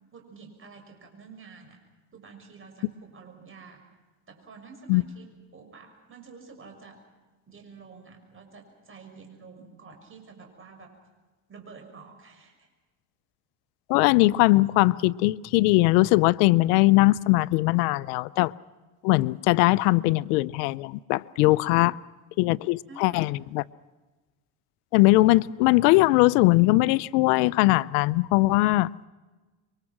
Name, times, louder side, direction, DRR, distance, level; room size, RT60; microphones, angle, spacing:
voice 1, 0.1-1.8 2.1-3.8 4.3-7.0 7.5-10.9 11.5-12.7 22.9-23.4, right 4 dB, 30° right, 6.2 m, -49 dB
voice 2, 13.9-18.5 19.0-22.0 22.4-23.6 24.9-28.9, left 20 dB, 85° left, 0.7 m, -20 dB
27.0 x 23.5 x 6.0 m
cardioid pair, 120°, 44 cm